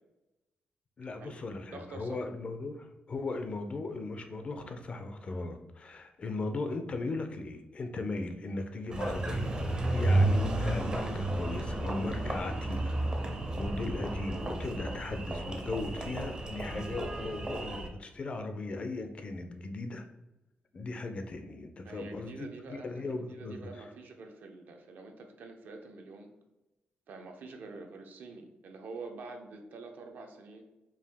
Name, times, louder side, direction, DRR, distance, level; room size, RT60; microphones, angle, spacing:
voice 1, 1.0-9.5 9.9-20.1 20.7-23.6, left 2 dB, 35° left, 7 dB, 0.4 m, -37 dB
voice 2, 1.7-2.2 21.8-26.3 27.1-30.6, right 3 dB, 65° right, 4 dB, 0.6 m, -46 dB
Engine, 8.9-17.9, right 2 dB, 25° right, 0.5 m, -32 dB
4.7 x 2.5 x 3.4 m, 0.99 s
wide cardioid pair, 155°, 3 cm